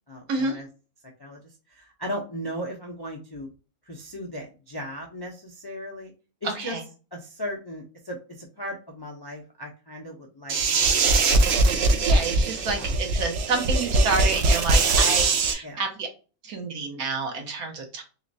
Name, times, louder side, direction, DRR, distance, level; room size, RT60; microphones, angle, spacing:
voice 1, 0.1-0.7 1.2-3.5 3.8-6.1 6.4-6.8 7.1-10.6 11.0-11.5 12.8-12.9 15.6-15.8, equal, 40° left, 0 dB, 0.3 m, -37 dB
voice 2, 6.4-6.8 12.0-16.1 16.4-18.0, right 3 dB, 90° right, 3 dB, 1.5 m, -29 dB
sound 1, 10.5-15.5, right 3 dB, 60° right, 0.8 m, -21 dB
3.8 x 3.0 x 2.6 m, 0.35 s
omnidirectional pair, 1.5 m